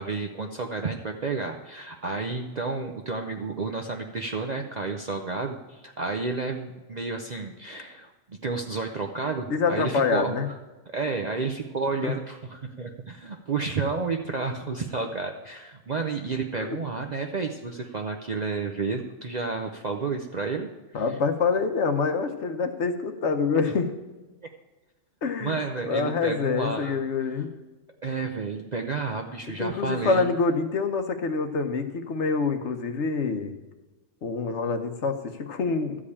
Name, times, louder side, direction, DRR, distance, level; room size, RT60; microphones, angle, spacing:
voice 1, 0.0-10.5 10.9-21.0 23.7-23.8 24.4-24.5 25.4-27.0 28.0-30.3, right 4 dB, 45° right, 3 dB, 0.6 m, -31 dB
voice 2, 9.5-10.5 12.0-12.1 16.6-16.8 20.9-23.9 25.2-27.5 29.6-33.6 34.2-36.0, left 4 dB, 65° left, 7 dB, 1.2 m, -26 dB
13.0 x 5.0 x 8.5 m, 1.2 s
omnidirectional pair, 1.3 m